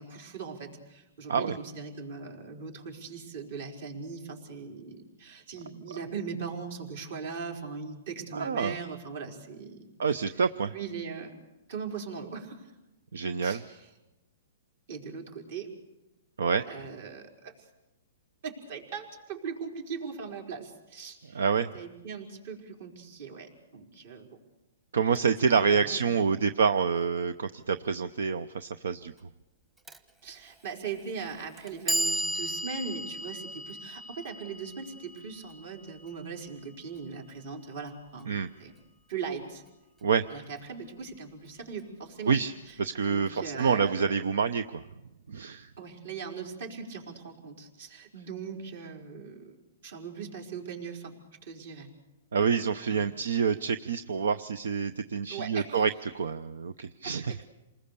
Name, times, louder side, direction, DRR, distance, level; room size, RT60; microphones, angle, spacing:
voice 1, 0.0-9.9 10.7-11.3 11.7-12.7 13.4-13.8 14.9-15.7 16.7-17.7 18.4-21.4 21.7-24.4 25.5-26.2 30.2-38.7 39.1-39.6 40.3-42.3 42.7-42.8 43.0-44.2 45.8-49.6 49.8-51.1 51.4-51.9 52.9-53.1 55.3-55.9, right 5 dB, 60° right, 2 dB, 4.8 m, -40 dB
voice 2, 8.3-8.8 10.0-10.7 13.1-13.6 16.4-16.6 21.3-21.7 24.9-29.1 38.3-38.5 40.0-40.3 42.3-42.5 42.8-44.8 45.3-45.7 52.3-57.4, right 6 dB, 85° right, 12 dB, 0.7 m, -27 dB
Clock, 29.9-30.0 30.9-31.0 31.6-37.6, right 1 dB, 10° right, 1.1 m, -36 dB
28.0 x 20.0 x 6.9 m, 0.99 s
hypercardioid pair, 155°, 0 cm